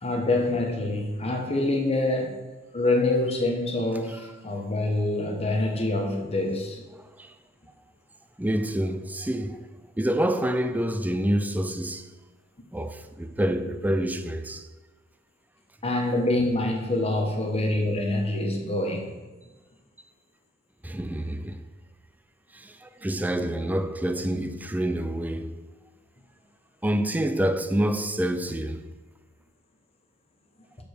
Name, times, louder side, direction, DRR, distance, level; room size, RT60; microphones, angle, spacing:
voice 1, 0.0-2.4 2.7-6.8 15.8-19.1, left 2 dB, 30° left, 1.2 m, -26 dB
voice 2, 8.4-9.7 10.0-12.1 12.7-14.7 20.8-21.6 22.5-25.6 26.8-28.9, right 1 dB, 10° right, 0.4 m, -27 dB
6.8 x 5.1 x 6.4 m
head